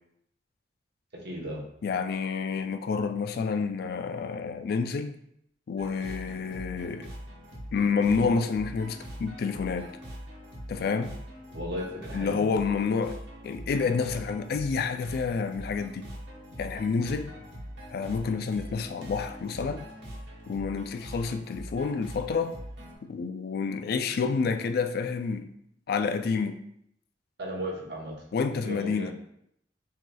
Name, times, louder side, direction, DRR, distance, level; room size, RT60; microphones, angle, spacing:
voice 1, 1.1-1.6 11.5-12.4 27.4-28.1 28.6-29.1, equal, 65° right, -1 dB, 1.0 m, -35 dB
voice 2, 1.8-5.2 5.7-7.1 7.7-9.9 10.7-11.1 12.1-13.2 13.4-16.1 16.6-17.3 17.9-19.9 20.5-22.6 23.0-25.5 25.9-26.6 28.3-29.1, left 5 dB, 60° left, 8 dB, 0.3 m, -29 dB
sound 1, 5.8-22.9, equal, 85° right, 1.2 m, -43 dB
6.1 x 2.7 x 2.3 m, 0.73 s
head